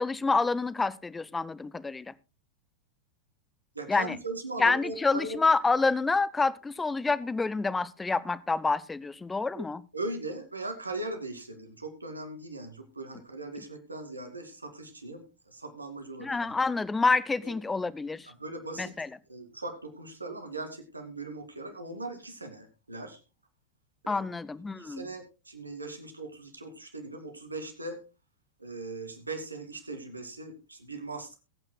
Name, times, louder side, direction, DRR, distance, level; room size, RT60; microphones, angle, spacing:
voice 1, 0.0-2.1 3.9-4.2 4.6-9.8 16.2-18.3 18.8-19.1 24.1-25.1, left 3 dB, 10° left, 0.6 m, -28 dB
voice 2, 3.7-5.4 9.5-9.7 9.9-16.6 17.4-17.5 18.4-18.9 19.3-23.2 24.0-24.2 24.8-28.0 28.6-31.3, right 2 dB, 80° right, 2.3 m, -39 dB
22.0 x 8.9 x 2.2 m
figure-of-eight pair, 90°, 0 cm